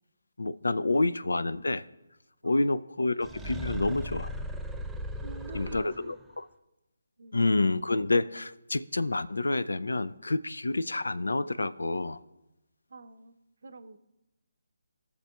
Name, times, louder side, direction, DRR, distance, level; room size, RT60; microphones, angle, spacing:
voice 1, 0.4-1.9 2.4-4.3 5.5-6.5 7.3-12.2, left 2 dB, 80° left, 15 dB, 0.4 m, -28 dB
sound 1, 3.2-6.2, equal, 5° right, 0.3 m, -37 dB
voice 2, 5.2-6.2 7.2-7.4 12.9-13.3 13.6-14.0, right 3 dB, 60° right, 11 dB, 0.6 m, -46 dB
18.5 x 6.6 x 2.3 m, 0.96 s
figure-of-eight pair, 150°, 0 cm